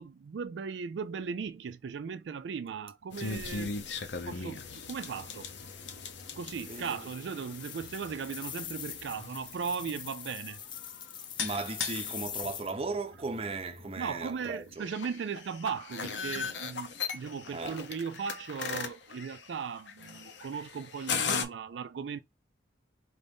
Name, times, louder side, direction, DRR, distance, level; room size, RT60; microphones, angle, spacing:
voice 1, 0.0-3.7 4.3-5.5 6.3-10.6 14.0-22.2, right 6 dB, 75° right, 0.4 m, -37 dB
sound 1, 3.1-21.5, left 5 dB, 75° left, 0.7 m, -39 dB
sound 2, 6.4-12.7, left 9 dB, 25° left, 0.4 m, -43 dB
voice 2, 6.7-7.1 11.4-14.9 17.5-17.8, right 3 dB, 35° right, 0.6 m, -37 dB
4.4 x 2.6 x 3.4 m
head